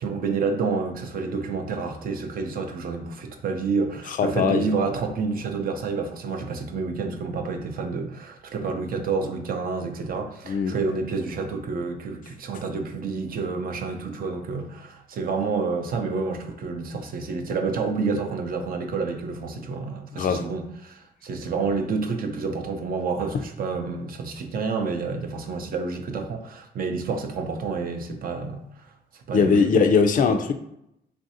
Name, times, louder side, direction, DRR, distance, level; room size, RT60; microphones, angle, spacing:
voice 1, 0.0-28.6 29.3-29.8, right 4 dB, 60° right, 5 dB, 0.5 m, -29 dB
voice 2, 4.1-4.7 10.5-10.8 20.2-20.5 29.3-30.5, left 5 dB, 55° left, 8 dB, 0.4 m, -20 dB
3.2 x 2.5 x 2.7 m, 0.78 s
cardioid pair, 70°, 17 cm